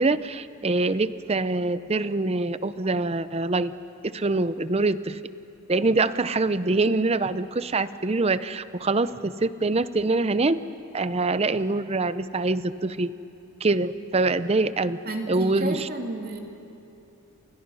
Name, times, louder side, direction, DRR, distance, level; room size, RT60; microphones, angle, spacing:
voice 1, 0.0-3.7 4.1-5.2 5.7-10.6 10.9-13.1 13.6-15.0 15.3-15.9, right 3 dB, 30° right, 14 dB, 0.6 m, -24 dB
voice 2, 15.0-16.4, right 2 dB, 45° right, 3 dB, 2.4 m, -32 dB
29.0 x 28.0 x 5.5 m, 2.8 s
head